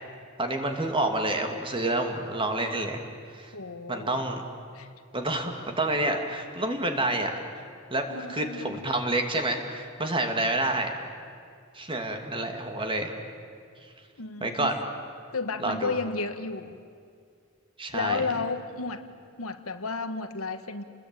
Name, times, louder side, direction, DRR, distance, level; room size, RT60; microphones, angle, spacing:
voice 1, 0.4-3.0 3.3-3.5 3.9-4.4 5.1-7.6 7.9-11.0 11.7-13.1 14.4-14.8 15.6-16.0 17.8-18.3, right 2 dB, 25° right, 4 dB, 2.5 m, -28 dB
voice 2, 3.5-4.2 4.7-4.9 8.0-8.9 14.2-14.7 15.3-16.8 17.9-19.0 19.4-20.8, left 4 dB, 80° left, 8 dB, 1.5 m, -32 dB
29.5 x 20.5 x 9.1 m, 2.3 s
head